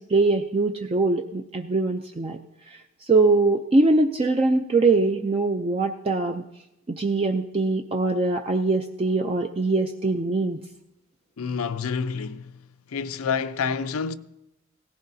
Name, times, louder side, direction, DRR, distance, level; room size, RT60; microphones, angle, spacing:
voice 1, 0.0-2.4 3.0-6.4 6.9-10.6, right 3 dB, 25° right, 0.4 m, -22 dB
voice 2, 11.4-12.5 12.9-14.1, left 6 dB, 90° left, 0.5 m, -28 dB
17.5 x 15.0 x 2.7 m
head